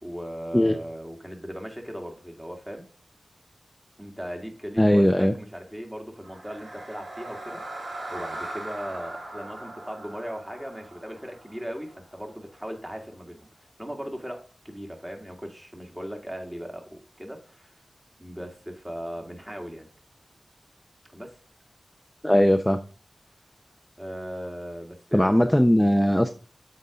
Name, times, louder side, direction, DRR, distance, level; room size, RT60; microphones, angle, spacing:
voice 1, 0.0-2.8 4.0-13.5 13.8-17.7 18.2-19.9 21.1-21.3 24.0-25.5, equal, 10° right, 2 dB, 1.9 m, -38 dB
voice 2, 4.8-5.3 22.2-22.8 25.1-26.3, equal, 10° left, 7 dB, 0.5 m, -19 dB
sound 1, 6.2-12.3, right 2 dB, 70° right, 2.3 m, -40 dB
7.8 x 4.1 x 5.0 m, 0.39 s
wide cardioid pair, 60°, 0 cm